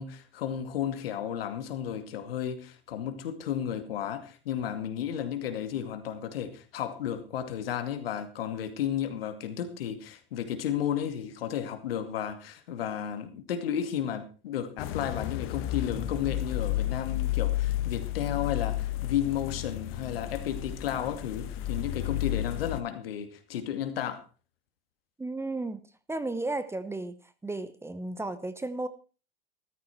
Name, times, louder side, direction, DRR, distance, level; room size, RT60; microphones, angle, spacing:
voice 1, 0.0-24.2, left 9 dB, 75° left, 2.5 m, -33 dB
sound 1, 14.8-22.8, left 14 dB, 45° left, 1.5 m, -32 dB
voice 2, 25.2-25.8 26.1-27.2 27.4-28.9, right 2 dB, 10° right, 1.0 m, -33 dB
14.0 x 13.5 x 4.5 m
hypercardioid pair, 100°, 30 cm